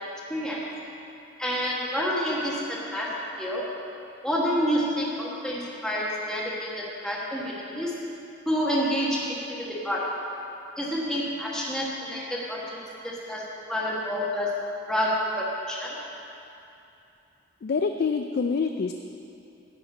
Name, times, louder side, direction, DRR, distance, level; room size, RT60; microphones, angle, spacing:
voice 1, 0.3-0.6 1.4-3.1 3.4-3.6 4.2-7.9 8.5-9.2 9.5-10.0 10.8-13.4 13.7-14.5 14.9-15.9, equal, 5° left, -6 dB, 1.3 m, -28 dB
voice 2, 17.6-18.9, left 5 dB, 55° left, 6 dB, 0.4 m, -26 dB
10.5 x 4.9 x 8.1 m, 2.7 s
head